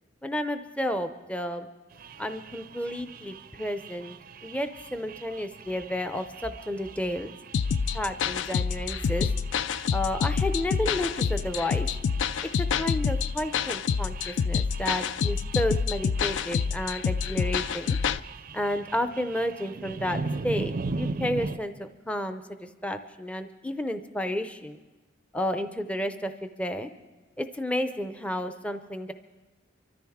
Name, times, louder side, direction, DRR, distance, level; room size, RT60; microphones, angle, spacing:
voice 1, 0.2-1.7 2.2-4.2 4.4-7.3 7.9-9.3 9.9-11.9 12.6-18.0 18.5-24.8 25.3-26.9 27.4-29.1, left 1 dB, 5° left, 8 dB, 0.5 m, -31 dB
sound 1, 1.9-21.6, right 3 dB, 45° right, 0.4 m, -40 dB
sound 2, 7.5-18.2, left 6 dB, 75° left, 0.4 m, -27 dB
24.5 x 13.5 x 3.6 m, 1.2 s
head